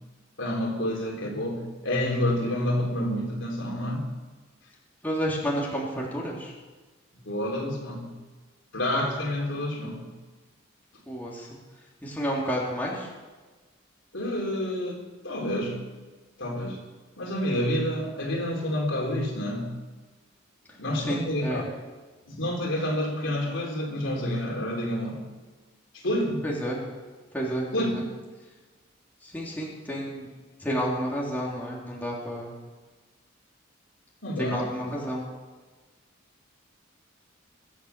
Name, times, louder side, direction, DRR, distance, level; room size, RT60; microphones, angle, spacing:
voice 1, 0.4-4.1 7.3-8.2 8.7-10.1 14.1-15.8 16.4-16.8 17.2-19.7 20.8-21.6 22.3-25.2 25.9-26.5 27.7-28.0 34.2-35.0, left 1 dB, 65° left, 0 dB, 3.9 m, -29 dB
voice 2, 5.0-6.5 11.1-11.5 12.0-13.1 21.1-21.6 26.4-26.8 27.3-28.0 29.2-30.3 30.6-32.5 34.4-35.2, equal, 10° left, -4 dB, 3.3 m, -30 dB
23.0 x 8.1 x 7.1 m, 1.3 s
head